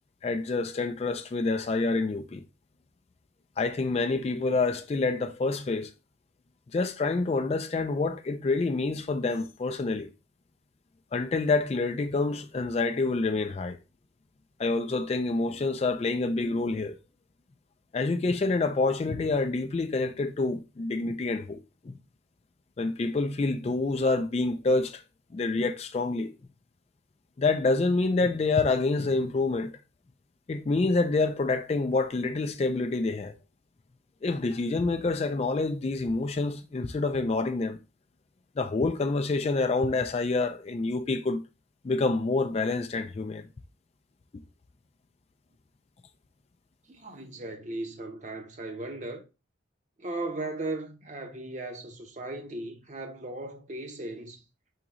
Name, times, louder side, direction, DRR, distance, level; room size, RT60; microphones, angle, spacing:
voice 1, 0.2-2.4 3.6-5.9 6.7-10.1 11.1-13.8 14.6-17.0 17.9-21.9 22.8-25.0 25.3-26.3 27.4-29.7 30.5-33.3 34.2-37.8 38.6-41.4 41.8-43.5, left 3 dB, 30° left, 0.3 m, -27 dB
voice 2, 46.9-49.2 50.0-54.4, right 2 dB, 40° right, 0.8 m, -37 dB
5.0 x 3.6 x 2.9 m
head